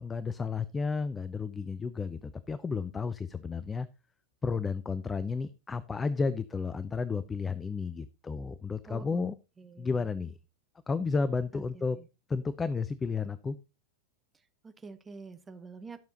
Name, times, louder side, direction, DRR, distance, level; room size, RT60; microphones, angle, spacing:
voice 1, 0.0-3.9 4.4-9.3 9.8-10.4 10.9-12.0 12.3-13.6, left 4 dB, 15° left, 15 dB, 0.5 m, -32 dB
voice 2, 8.8-10.1 11.5-12.1 14.6-16.0, right 4 dB, 15° right, 9 dB, 1.1 m, -48 dB
12.0 x 6.9 x 4.0 m, 0.29 s
figure-of-eight pair, 90°, 0 cm